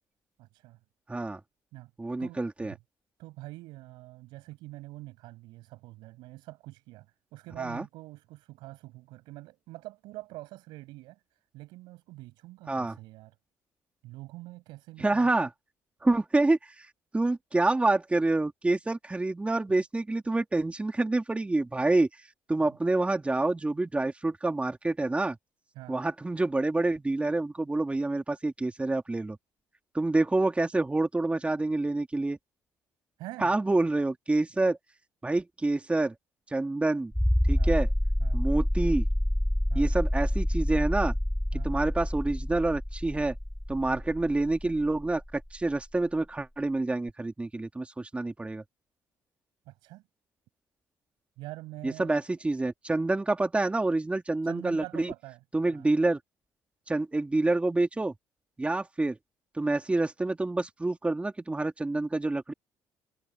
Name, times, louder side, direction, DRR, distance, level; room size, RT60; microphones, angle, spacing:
voice 1, 0.4-0.8 1.7-1.9 2.2-2.8 3.2-11.2 11.5-13.3 14.0-15.3 22.6-22.8 25.8-26.0 33.2-33.5 37.6-37.7 38.2-38.4 39.7-39.9 41.5-41.7 43.8-44.0 49.7-50.0 51.4-52.2 54.4-55.4 55.7-55.9, right 19 dB, 85° right, 7.2 m, -45 dB
voice 2, 1.1-1.4 2.0-2.7 7.6-7.8 12.7-13.0 15.0-15.5 16.0-16.9 17.1-22.1 22.5-25.4 25.9-29.4 29.9-32.4 33.4-34.8 35.2-36.1 36.5-37.1 37.5-37.9 38.3-39.1 39.7-41.1 41.6-43.3 43.7-48.6 51.8-55.1 55.5-56.2 56.9-58.1 58.6-59.2 59.5-62.5, right 2 dB, 15° right, 2.6 m, -27 dB
sound 1, 37.1-45.6 47.1-47.2, equal, 5° left, 1.4 m, -27 dB
supercardioid pair, 80°, 7 cm